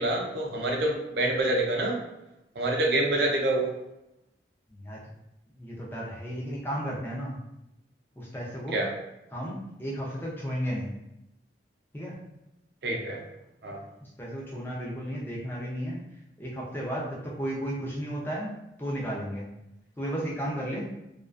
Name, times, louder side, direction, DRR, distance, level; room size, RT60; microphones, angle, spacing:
voice 1, 0.0-2.0 2.6-3.7 8.7-8.9 12.8-13.2 13.6-13.8, right 1 dB, 65° right, 0 dB, 0.5 m, -26 dB
voice 2, 4.7-5.0 5.6-7.3 8.2-8.8 9.3-10.9 11.9-12.1 14.0-16.0 16.4-19.5 20.0-20.9, equal, 10° left, -4 dB, 0.5 m, -34 dB
2.3 x 2.2 x 2.4 m, 0.89 s
head